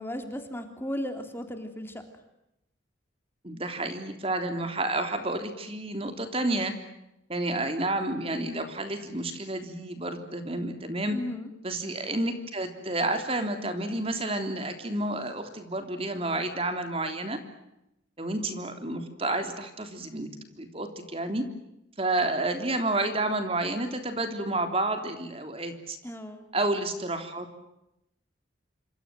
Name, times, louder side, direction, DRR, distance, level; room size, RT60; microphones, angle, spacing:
voice 1, 0.0-2.0 11.1-11.5 26.0-26.7, left 1 dB, 10° left, 6 dB, 3.4 m, -35 dB
voice 2, 3.4-6.7 7.3-11.2 11.6-17.4 18.2-20.3 20.6-21.4 22.0-26.0 26.5-27.6, right 2 dB, 30° right, 7 dB, 3.4 m, -30 dB
28.0 x 26.0 x 7.7 m, 0.87 s
head